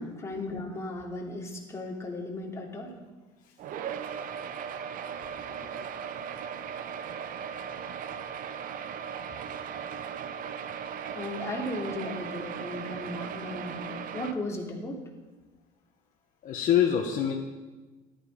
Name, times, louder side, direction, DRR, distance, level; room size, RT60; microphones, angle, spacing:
voice 1, 0.2-2.9 11.1-15.0, left 1 dB, 15° left, -2 dB, 3.0 m, -36 dB
sound 1, 3.6-14.3, right 7 dB, 55° right, 0.9 m, -37 dB
voice 2, 16.4-17.3, left 9 dB, 55° left, 0 dB, 1.4 m, -25 dB
14.0 x 11.0 x 5.4 m, 1.2 s
supercardioid pair, 100°, 16 cm